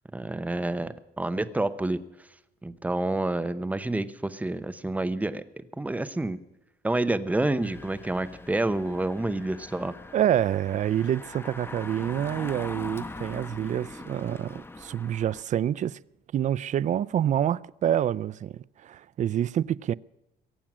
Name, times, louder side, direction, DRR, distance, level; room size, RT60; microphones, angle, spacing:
voice 1, 0.1-2.0 2.6-6.4 6.8-10.0, right 2 dB, 10° right, 0.8 m, -28 dB
Engine, 7.6-15.4, left 2 dB, 15° left, 1.0 m, -42 dB
voice 2, 10.1-16.0 16.3-19.9, right 10 dB, 45° right, 0.4 m, -27 dB
23.0 x 8.7 x 6.1 m
cardioid pair, 135°, 17 cm